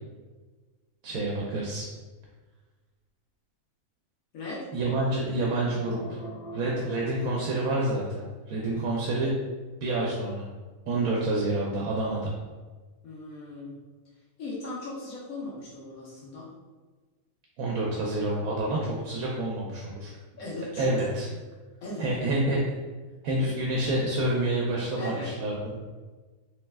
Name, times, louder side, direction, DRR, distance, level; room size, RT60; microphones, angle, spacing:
voice 1, 1.0-1.9 4.7-6.0 6.5-9.3 9.8-10.5 10.9-12.3 17.6-20.1 20.8-21.3 22.0-22.7 23.2-25.8, right 2 dB, 75° right, -3 dB, 1.0 m, -28 dB
voice 2, 4.3-4.6 13.0-13.8 14.4-16.5 20.3-21.1 21.8-22.1 25.0-25.3, left 2 dB, 75° left, -6 dB, 1.4 m, -38 dB
sound 1, 5.5-8.1, equal, 60° left, 0.6 m, -44 dB
3.3 x 3.1 x 3.4 m, 1.3 s
omnidirectional pair, 1.5 m